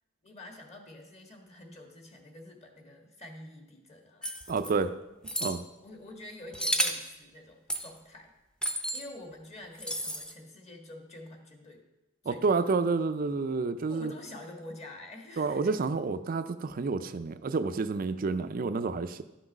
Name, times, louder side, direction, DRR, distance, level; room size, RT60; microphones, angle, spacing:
voice 1, 0.2-4.3 5.8-8.3 8.9-11.8 12.2-12.7 13.9-15.7, left 1 dB, 30° left, 2 dB, 1.5 m, -47 dB
sound 1, 4.2-4.7 5.2-5.6 6.5-7.1 7.7-7.9 8.6-9.0 9.8-10.3, equal, 5° left, 0.7 m, -31 dB
voice 2, 4.5-5.0 5.4-5.6 12.3-14.1 15.4-19.2, right 4 dB, 45° right, 11 dB, 0.4 m, -29 dB
12.5 x 6.0 x 5.3 m, 0.99 s
head